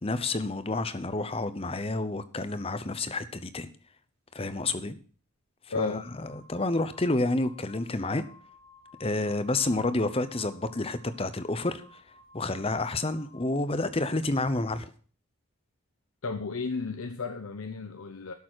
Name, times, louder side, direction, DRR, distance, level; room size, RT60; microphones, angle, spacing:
voice 1, 0.0-3.7 4.3-4.9 5.7-6.0 6.5-8.2 9.0-11.8 12.3-14.9, left 2 dB, 25° left, 0.8 m, -29 dB
voice 2, 5.7-6.1 16.2-18.3, left 4 dB, 75° left, 0.8 m, -33 dB
sound 1, 5.8-13.6, left 3 dB, 80° right, 3.3 m, -56 dB
12.0 x 7.0 x 6.2 m
head